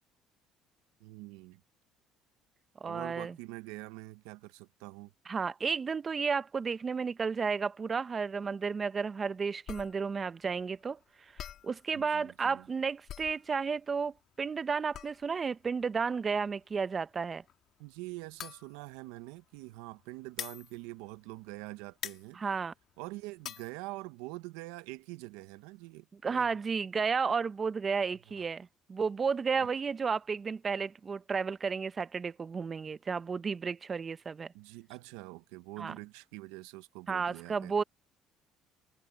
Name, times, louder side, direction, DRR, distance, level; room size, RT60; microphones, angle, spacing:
voice 1, 1.0-1.6 2.8-5.1 11.9-12.7 17.8-22.4 23.0-26.6 28.4-28.5 29.6-29.7 34.5-37.8, right 21 dB, 85° right, 1.0 m, -45 dB
voice 2, 2.8-3.3 5.3-11.0 11.3-17.4 22.3-22.7 26.2-34.5 35.8-35.9 37.1-37.8, right 5 dB, 35° right, 0.9 m, -32 dB
sound 1, 9.7-21.6 21.9-23.7, left 10 dB, 60° left, 2.9 m, -46 dB
supercardioid pair, 75°, 0 cm